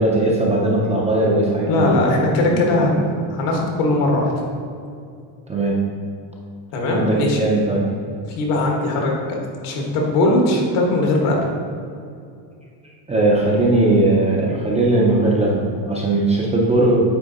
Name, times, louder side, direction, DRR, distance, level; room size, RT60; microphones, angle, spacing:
voice 1, 0.0-2.9 5.5-5.8 6.9-7.9 13.1-17.0, right 2 dB, 15° right, -4 dB, 0.5 m, -19 dB
voice 2, 1.7-4.3 6.7-7.5 8.3-9.1 9.6-11.5, left 2 dB, 75° left, 0 dB, 1.6 m, -19 dB
8.8 x 3.6 x 3.9 m, 2.4 s
cardioid pair, 160°, 50 cm